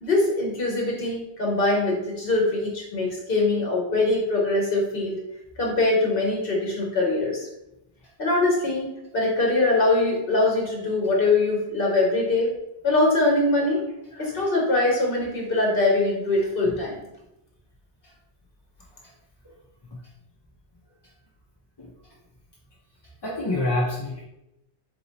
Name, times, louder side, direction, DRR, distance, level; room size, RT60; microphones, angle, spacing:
voice 1, 0.0-5.2 5.6-7.5 8.2-8.9 9.1-12.5 12.8-13.8 14.1-17.0, left 2 dB, 55° left, -2 dB, 1.3 m, -22 dB
voice 2, 23.2-24.2, left 2 dB, 30° left, -4 dB, 0.5 m, -28 dB
3.9 x 2.7 x 4.1 m, 0.89 s
omnidirectional pair, 1.1 m